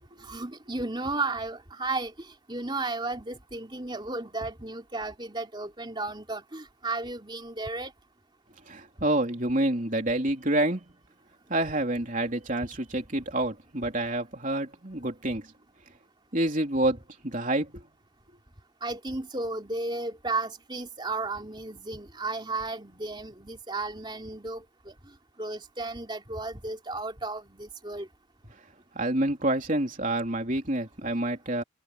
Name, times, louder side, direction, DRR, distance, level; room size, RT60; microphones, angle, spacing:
voice 1, 0.3-2.1 2.5-7.9 18.8-24.6 25.4-28.1, right 3 dB, 20° right, 3.4 m, -34 dB
voice 2, 8.7-10.8 11.5-15.5 16.3-17.8 28.9-31.6, right 1 dB, 40° right, 3.4 m, -28 dB
head